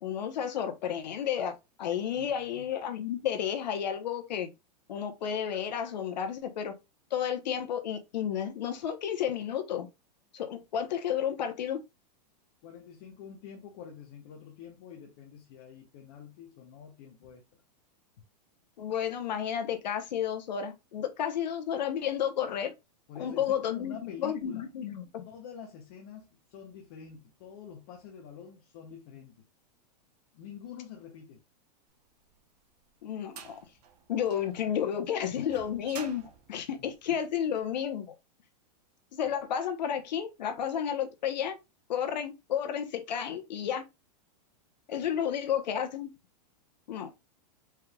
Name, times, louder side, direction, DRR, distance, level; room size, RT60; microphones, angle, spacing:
voice 1, 0.0-4.5 4.9-6.7 7.1-9.9 10.3-11.8 18.8-22.7 23.2-25.2 33.0-33.6 34.1-38.1 39.1-41.6 41.9-43.8 44.9-46.1 46.9-47.1, left 9 dB, 90° left, 1.0 m, -32 dB
voice 2, 2.2-2.6 12.6-17.4 23.1-24.7 25.2-29.4 30.3-31.4 36.7-36.9, left 8 dB, 35° left, 0.7 m, -47 dB
sound 1, 32.3-37.6, right 8 dB, 70° right, 0.9 m, -49 dB
4.5 x 3.4 x 2.3 m
supercardioid pair, 175°, 21 cm